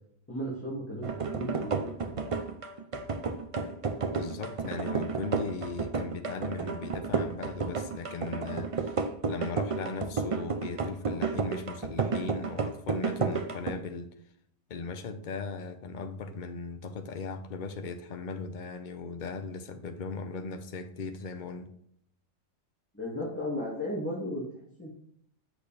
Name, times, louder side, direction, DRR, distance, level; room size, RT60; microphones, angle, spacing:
voice 1, 0.3-2.4 22.9-24.9, equal, 10° left, 2.0 m, -36 dB
sound 1, 1.0-13.7, right 4 dB, 60° right, 0.3 m, -32 dB
voice 2, 4.1-14.1 14.7-21.7, left 4 dB, 40° left, 0.8 m, -38 dB
8.0 x 6.3 x 3.3 m
omnidirectional pair, 1.5 m